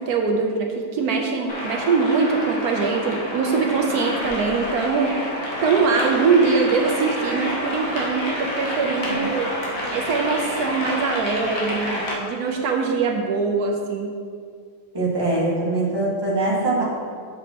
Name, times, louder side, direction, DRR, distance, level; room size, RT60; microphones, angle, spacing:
voice 1, 0.0-5.3 5.6-9.5 9.9-14.1, right 4 dB, 80° right, 1 dB, 1.1 m, -22 dB
sound 1, 1.5-12.1, left 1 dB, 60° left, 1.6 m, -29 dB
voice 2, 14.9-16.8, right 2 dB, 15° right, -6 dB, 1.4 m, -23 dB
7.1 x 6.9 x 2.9 m, 2.1 s
omnidirectional pair, 1.6 m